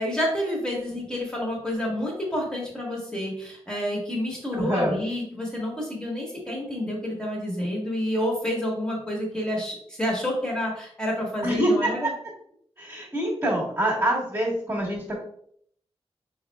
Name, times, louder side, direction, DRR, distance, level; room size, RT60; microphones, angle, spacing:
voice 1, 0.0-12.1, equal, 5° left, -3 dB, 1.5 m, -29 dB
voice 2, 4.5-5.0 11.4-12.1 12.8-15.2, right 1 dB, 25° right, -8 dB, 1.4 m, -25 dB
5.4 x 4.1 x 2.3 m, 0.65 s
wide cardioid pair, 155°, 11 cm